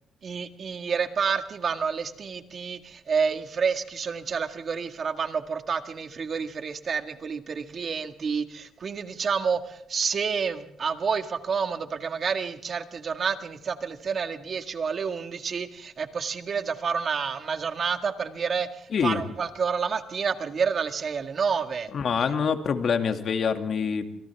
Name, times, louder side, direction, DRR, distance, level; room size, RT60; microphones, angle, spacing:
voice 1, 0.2-21.9, right 6 dB, 50° right, 7 dB, 1.9 m, -29 dB
voice 2, 18.9-19.2 21.9-24.1, left 6 dB, 55° left, 6 dB, 2.3 m, -25 dB
29.0 x 27.0 x 3.5 m, 0.77 s
cardioid pair, 90°, 0 cm